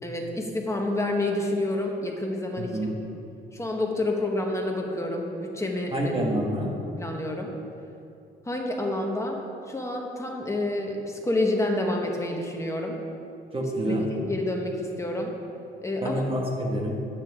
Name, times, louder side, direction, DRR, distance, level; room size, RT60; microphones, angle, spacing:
voice 1, 0.0-2.9 3.5-6.1 7.0-7.5 8.5-9.4 9.7-13.0 13.9-15.3 15.8-16.2, left 1 dB, 15° left, 1 dB, 1.4 m, -28 dB
voice 2, 2.6-2.9 5.9-6.7 13.5-14.1 16.0-17.0, equal, 25° right, -1 dB, 1.8 m, -27 dB
10.0 x 8.9 x 3.8 m, 2.6 s
cardioid pair, 90°, 20 cm